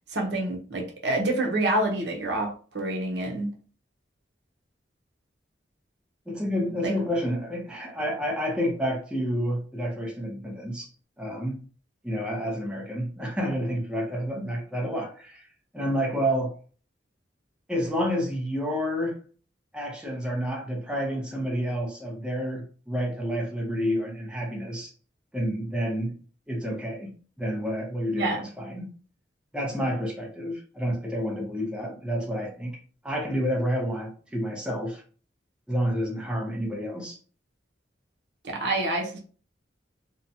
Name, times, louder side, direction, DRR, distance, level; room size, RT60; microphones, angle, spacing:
voice 1, 0.1-3.5 6.8-6.9 14.3-14.5 28.1-28.5 38.4-39.2, right 2 dB, 70° right, 0.7 m, -27 dB
voice 2, 6.3-10.9 11.2-11.6 12.0-15.4 15.7-16.6 17.7-19.2 19.7-24.9 25.3-26.1 26.5-27.1 27.4-28.9 29.5-32.8 33.0-35.0 35.7-37.2, equal, 5° right, 0.6 m, -29 dB
2.7 x 2.2 x 2.6 m
head